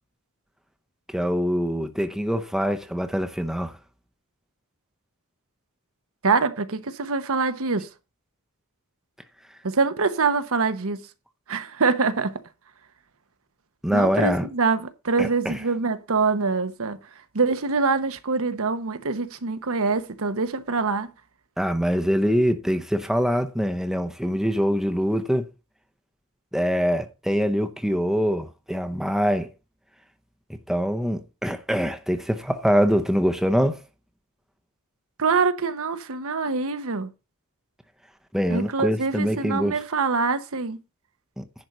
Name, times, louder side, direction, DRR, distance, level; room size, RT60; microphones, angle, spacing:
voice 1, 1.1-3.7 13.8-14.5 15.2-15.6 21.6-25.4 26.5-29.5 30.5-33.8 38.3-39.8 41.4-41.5, equal, ahead, 0.7 m, -24 dB
voice 2, 6.2-7.9 9.7-11.0 11.5-12.3 13.9-17.0 17.3-21.1 35.2-37.1 38.5-40.8, right 4 dB, 65° right, 0.9 m, -24 dB
10.5 x 4.5 x 6.5 m
head